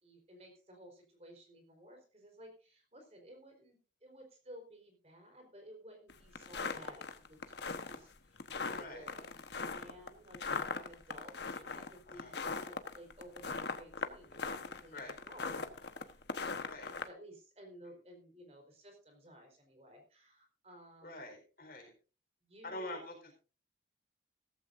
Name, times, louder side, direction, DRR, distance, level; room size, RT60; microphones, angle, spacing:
voice 1, 0.0-7.4 7.7-16.2 16.8-21.3 22.4-23.1, equal, 35° right, 3 dB, 4.2 m, -56 dB
sound 1, 6.1-17.1, left 4 dB, 65° left, 1.2 m, -39 dB
voice 2, 8.7-9.1 12.1-12.4 14.9-15.2 16.6-16.9 21.0-21.9 22.6-23.3, left 1 dB, 50° left, 3 dB, 4.4 m, -46 dB
16.0 x 14.5 x 2.6 m, 0.35 s
head